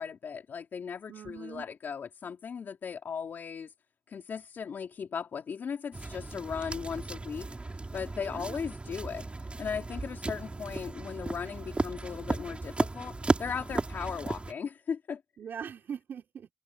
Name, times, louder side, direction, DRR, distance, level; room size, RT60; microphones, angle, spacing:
voice 1, 0.0-3.7 4.1-15.2, left 6 dB, 80° left, 3.1 m, -37 dB
voice 2, 1.1-1.7 8.2-8.6 15.4-16.5, right 7 dB, 85° right, 4.3 m, -41 dB
sound 1, 5.9-14.5, right 2 dB, 35° right, 6.2 m, -35 dB
cardioid pair, 60°, 3 cm